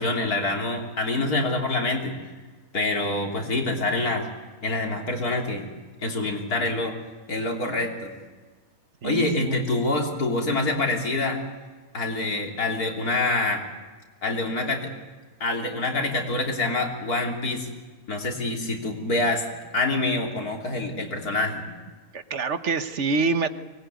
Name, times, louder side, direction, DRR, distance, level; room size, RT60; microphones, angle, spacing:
voice 1, 0.0-2.1 2.7-4.3 4.6-5.7 6.0-6.9 7.3-8.1 9.0-11.4 11.9-13.6 14.2-14.9 15.4-17.7 18.1-19.4 19.7-21.7, left 2 dB, 85° left, 1 dB, 3.8 m, -26 dB
voice 2, 9.0-9.6 22.1-23.5, right 4 dB, 55° right, 11 dB, 1.3 m, -26 dB
24.0 x 20.0 x 9.4 m, 1.4 s
omnidirectional pair, 1.6 m